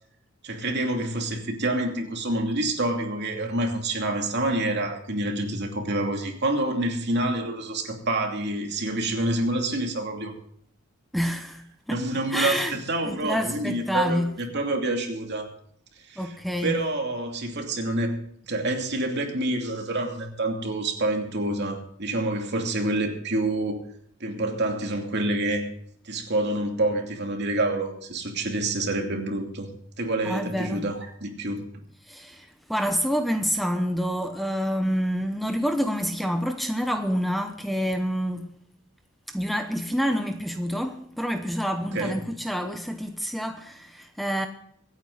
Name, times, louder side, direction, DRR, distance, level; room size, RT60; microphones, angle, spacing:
voice 1, 0.4-10.3 11.9-14.2 14.5-15.5 16.1-16.3 16.6-18.2 18.4-23.8 24.2-25.7 26.0-29.7 30.0-31.6 41.9-42.2, right 1 dB, 55° right, 2.7 m, -27 dB
voice 2, 11.1-12.0 12.3-12.8 13.0-14.3 16.2-16.8 30.2-30.9 32.1-38.5 39.3-44.5, equal, ahead, 0.9 m, -27 dB
24.5 x 9.3 x 4.0 m
head